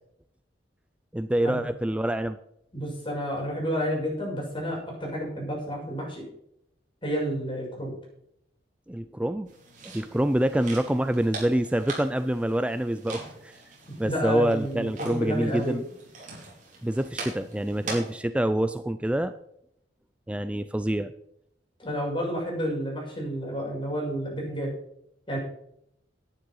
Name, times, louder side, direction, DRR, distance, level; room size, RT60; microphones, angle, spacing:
voice 1, 1.1-2.4 8.9-9.5 9.8-13.5 14.0-15.8 16.8-19.3 20.3-21.1, right 1 dB, 5° right, 11 dB, 0.4 m, -26 dB
voice 2, 2.7-6.2 7.0-7.9 14.0-15.8 21.8-24.7 25.3-25.4, equal, 30° left, -2 dB, 6.2 m, -30 dB
sound 1, 9.5-18.2, right 3 dB, 45° right, 4.5 m, -42 dB
11.5 x 9.5 x 5.7 m, 0.73 s
head